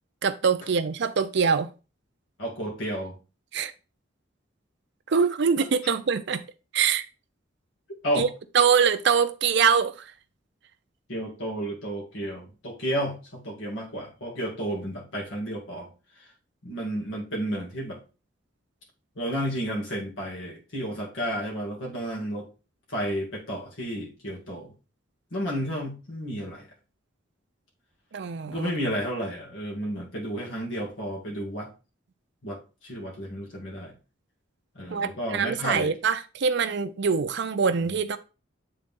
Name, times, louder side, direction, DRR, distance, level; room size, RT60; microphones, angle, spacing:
voice 1, 0.2-1.7 3.5-3.7 5.1-6.4 6.7-7.1 8.2-8.3 8.5-9.9 28.1-28.7 34.9-38.2, right 6 dB, 60° right, 0.5 m, -24 dB
voice 2, 2.4-3.2 5.6-5.9 8.0-8.3 11.1-15.9 16.2-16.3 16.6-18.0 19.2-22.5 22.9-24.7 25.3-26.7 28.5-31.7 32.4-33.9 34.7-36.0, equal, 75° left, 2.1 m, -32 dB
7.9 x 3.9 x 3.5 m
head